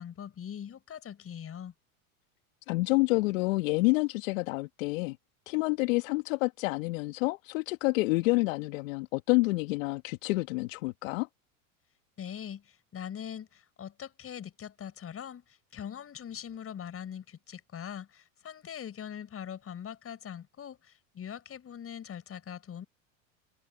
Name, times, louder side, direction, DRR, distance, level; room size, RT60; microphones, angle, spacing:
voice 1, 0.0-1.7 12.2-22.8, left 9 dB, 30° left, 7.2 m, -42 dB
voice 2, 2.7-5.2 5.5-11.3, left 24 dB, 65° left, 1.8 m, -28 dB
hypercardioid pair, 95°, 42 cm